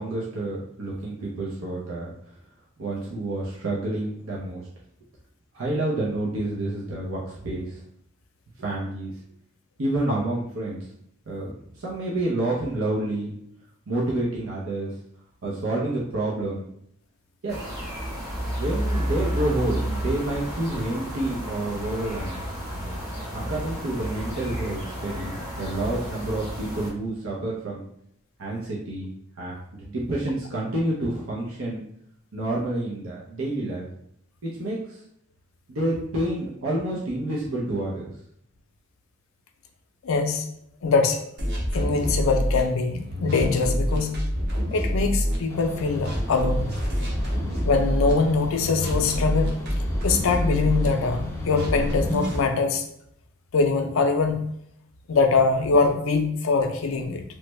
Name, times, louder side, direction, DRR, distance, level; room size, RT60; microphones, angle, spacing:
voice 1, 0.0-2.1 2.8-4.7 5.5-7.8 8.6-9.1 9.8-10.8 11.3-13.3 13.9-14.9 15.4-16.6 17.4-17.6 18.4-22.4 23.3-27.8 28.4-29.1 29.4-31.8 32.3-33.9 34.4-35.0 35.7-38.0, right 1 dB, 85° right, -5 dB, 0.6 m, -29 dB
sound 1, 17.5-26.9, equal, 20° right, 0.9 m, -31 dB
voice 2, 40.0-40.4 40.8-41.2 41.7-44.1 44.7-46.7 47.6-49.5 50.0-52.8 53.5-54.4 55.1-57.2, left 4 dB, 85° left, 6 dB, 0.4 m, -23 dB
sound 2, 41.4-42.6 43.1-45.4 45.8-48.1 48.6-50.9 51.4-52.4, equal, 55° right, 0.7 m, -26 dB
sound 3, 45.5-52.4, left 1 dB, 15° left, 0.3 m, -37 dB
3.1 x 2.1 x 3.0 m, 0.71 s
head